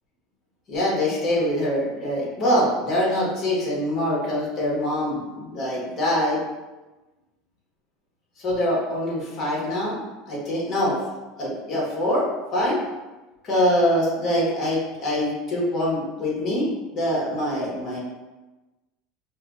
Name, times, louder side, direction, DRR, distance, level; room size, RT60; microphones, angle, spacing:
voice 1, 0.7-6.4 8.4-10.9 11.4-12.3 12.5-12.8 13.4-16.7 16.9-18.0, left 1 dB, 25° left, -4 dB, 1.1 m, -24 dB
4.5 x 2.6 x 2.4 m, 1.1 s
cardioid pair, 175°, 0 cm